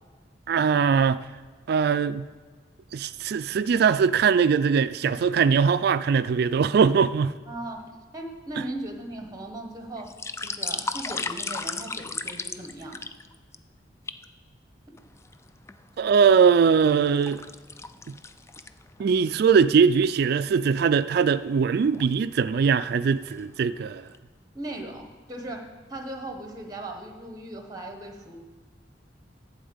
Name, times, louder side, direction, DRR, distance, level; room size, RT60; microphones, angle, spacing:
voice 1, 0.5-1.2 1.7-2.3 2.9-7.4 16.0-17.4 19.0-24.1, right 6 dB, 60° right, 0.3 m, -21 dB
voice 2, 7.5-10.1 10.4-13.0 24.5-28.4, right 1 dB, 20° right, 1.1 m, -38 dB
sound 1, 10.0-13.6 14.1-14.2 15.0-15.8 16.3-19.1 19.5-19.6 20.0-20.1 20.6-20.8 21.7-22.1 22.7-22.9 23.2-23.8 24.1-24.2, left 4 dB, 15° left, 0.3 m, -35 dB
11.5 x 4.3 x 8.0 m
head